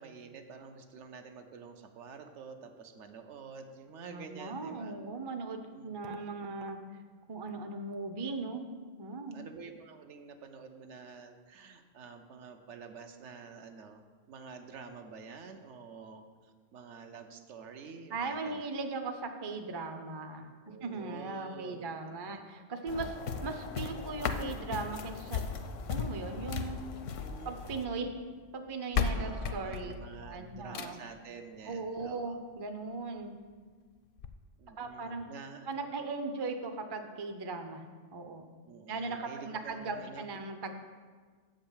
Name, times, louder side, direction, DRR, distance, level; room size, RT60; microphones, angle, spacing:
voice 1, 0.0-5.0 5.7-5.9 6.3-6.5 9.2-18.6 20.6-23.2 27.2-27.6 29.1-32.4 34.6-35.7 38.7-40.3, right 5 dB, 70° right, 6 dB, 1.0 m, -49 dB
voice 2, 4.1-6.8 7.3-8.7 9.0-9.5 18.1-23.1 23.4-25.4 25.9-26.8 27.4-28.1 28.5-29.9 30.3-31.0 31.7-33.4 34.8-35.2 35.7-37.9 38.1-38.5 38.9-40.7, right 3 dB, 30° right, 6 dB, 0.4 m, -38 dB
sound 1, 22.9-27.9, left 6 dB, 80° left, 1.0 m, -37 dB
sound 2, 26.6-27.8 28.6-28.7 28.9-31.2 32.6-32.7 33.2-33.3 33.5-33.6 34.2-34.3, left 6 dB, 60° left, 0.6 m, -35 dB
7.7 x 5.2 x 7.2 m, 1.5 s
omnidirectional pair, 1.3 m